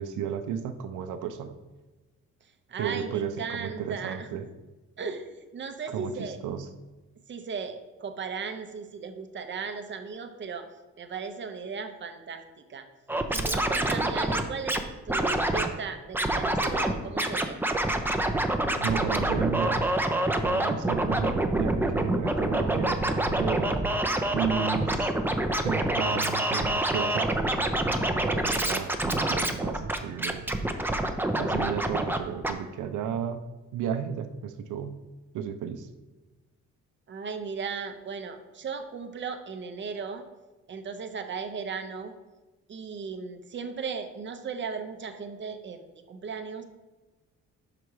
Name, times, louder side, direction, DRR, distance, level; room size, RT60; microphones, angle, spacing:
voice 1, 0.0-1.5 2.8-4.5 5.9-6.7 18.8-19.8 20.4-23.8 24.3-25.1 25.6-27.4 28.1-30.6 31.4-33.4 33.7-35.0 35.3-35.9, right 8 dB, 80° right, 10 dB, 0.6 m, -33 dB
voice 2, 2.7-4.3 5.0-6.4 7.3-10.7 11.0-12.4 12.7-12.9 13.3-14.8 15.1-17.6 37.1-40.2 40.7-42.1 42.7-46.6, right 5 dB, 40° right, 7 dB, 0.8 m, -36 dB
Scratching (performance technique), 13.1-14.8 15.1-15.7 16.1-16.9 17.2-32.2 32.4-32.5, right 1 dB, 5° right, 0.6 m, -26 dB
5.4 x 4.9 x 4.7 m, 1.2 s
cardioid pair, 90°, 30 cm